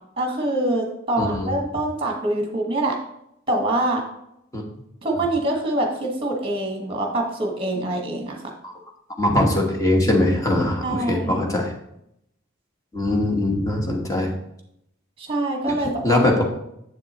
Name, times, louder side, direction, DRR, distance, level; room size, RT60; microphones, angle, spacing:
voice 1, 0.2-3.0 3.5-4.0 5.0-8.4 10.8-11.4 15.2-16.2, right 1 dB, 25° right, 1 dB, 1.5 m, -25 dB
voice 2, 1.2-1.5 4.5-4.6 8.6-8.7 9.2-11.7 12.9-14.3 15.7-16.4, left 1 dB, 15° left, 0 dB, 1.2 m, -21 dB
7.7 x 7.4 x 3.0 m, 0.78 s
head